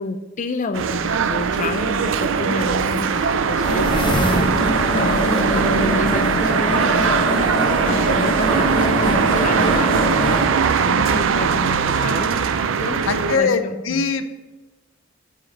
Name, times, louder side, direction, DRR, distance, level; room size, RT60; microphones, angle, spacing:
voice 1, 0.0-4.6 4.9-7.5 7.8-12.3 12.8-13.1 13.4-14.1, left 3 dB, 40° left, 7 dB, 0.4 m, -29 dB
sound 1, 0.7-13.4, right 6 dB, 80° right, 0.5 m, -20 dB
Bowed string instrument, 3.5-7.7, left 3 dB, 65° left, 1.0 m, -33 dB
sound 2, 3.6-10.5, equal, 25° left, 1.1 m, -23 dB
voice 2, 13.1-14.2, left 5 dB, 85° left, 10 dB, 0.6 m, -21 dB
8.2 x 5.0 x 5.3 m, 1.2 s
head